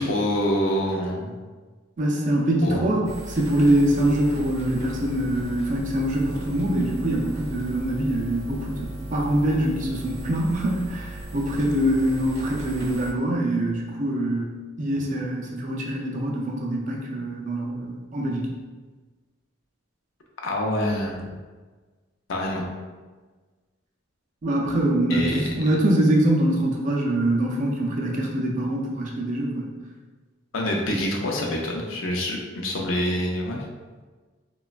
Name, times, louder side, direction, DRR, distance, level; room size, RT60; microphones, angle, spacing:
voice 1, 0.0-1.3 2.6-3.1 20.4-21.3 22.3-22.6 25.1-25.5 30.5-33.6, left 1 dB, 70° left, 0 dB, 0.5 m, -26 dB
voice 2, 2.0-3.0 3.3-14.5 14.8-18.5 24.4-29.7, right 1 dB, 40° right, -1 dB, 0.4 m, -24 dB
sound 1, 3.0-13.1, right 1 dB, 50° left, 1.0 m, -36 dB
3.0 x 2.2 x 2.4 m, 1.4 s
head